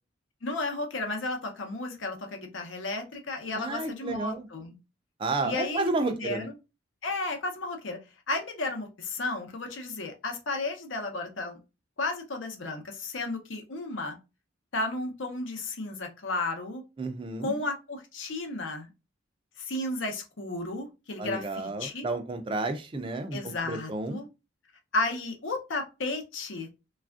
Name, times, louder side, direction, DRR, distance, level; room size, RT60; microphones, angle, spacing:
voice 1, 0.4-4.7 5.4-6.4 7.0-8.0 8.3-11.6 12.0-14.2 14.7-16.8 17.4-18.9 19.6-22.1 23.3-24.3 24.9-26.8, left 2 dB, 85° left, 4 dB, 0.7 m, -33 dB
voice 2, 3.5-4.5 5.2-6.5 17.0-17.6 21.2-24.2, right 2 dB, 25° right, 7 dB, 0.3 m, -31 dB
3.2 x 2.4 x 2.4 m, 0.28 s
head